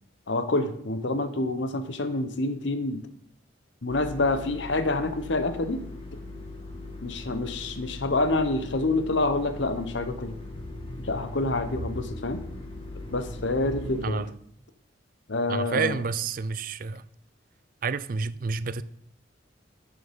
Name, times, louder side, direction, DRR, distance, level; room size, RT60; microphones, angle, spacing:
voice 1, 0.3-3.1 3.8-5.8 7.0-10.3 11.0-12.4 13.1-14.3 15.3-16.0, left 2 dB, 70° left, 0.9 m, -27 dB
sound 1, 3.9-14.1, left 2 dB, 30° left, 1.7 m, -39 dB
voice 2, 15.5-17.0 17.8-18.8, right 4 dB, 45° right, 0.4 m, -29 dB
10.5 x 7.0 x 5.2 m
head